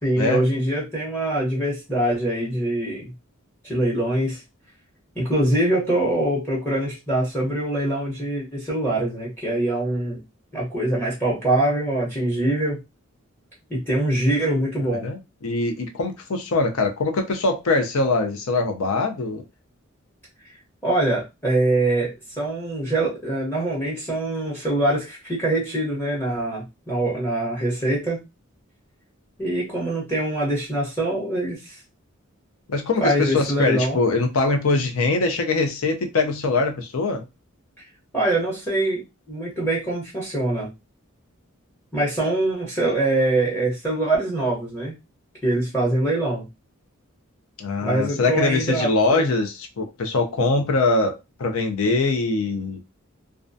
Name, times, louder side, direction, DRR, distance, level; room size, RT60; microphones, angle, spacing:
voice 1, 0.0-3.1 3.6-4.4 5.2-10.2 10.5-12.8 13.7-15.0 20.8-28.2 29.4-31.8 33.0-34.0 38.1-39.0 39.3-40.7 41.9-44.9 45.4-46.4 47.8-49.2, right 1 dB, 10° left, 0.8 m, -23 dB
voice 2, 14.8-19.4 32.7-37.2 47.6-52.8, left 3 dB, 75° left, 0.5 m, -23 dB
2.3 x 2.2 x 2.5 m
head